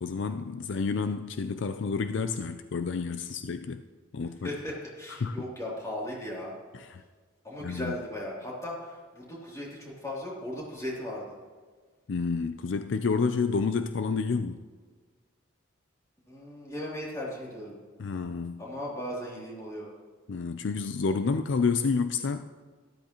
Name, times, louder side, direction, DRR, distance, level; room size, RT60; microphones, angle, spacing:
voice 1, 0.0-3.8 4.1-4.5 5.2-5.4 6.8-7.0 7.6-8.0 12.1-14.6 18.0-18.6 20.3-22.5, left 4 dB, 65° left, 9 dB, 0.4 m, -29 dB
voice 2, 4.4-6.5 7.4-11.3 16.3-17.8 18.6-19.9, left 1 dB, 15° left, -5 dB, 3.0 m, -37 dB
13.0 x 12.0 x 3.0 m, 1.5 s
head